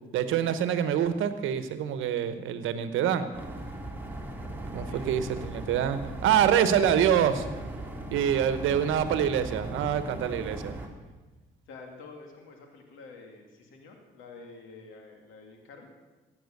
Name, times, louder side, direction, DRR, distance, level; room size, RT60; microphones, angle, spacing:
voice 1, 0.1-3.3 4.7-7.5 8.1-10.8, right 9 dB, 85° right, 11 dB, 1.1 m, -26 dB
sound 1, 3.3-10.9, right 1 dB, 10° right, 2.3 m, -38 dB
voice 2, 6.4-6.9 11.7-15.9, left 4 dB, 90° left, 2 dB, 2.4 m, -48 dB
15.5 x 8.9 x 6.6 m, 1.2 s
cardioid pair, 90°, 20 cm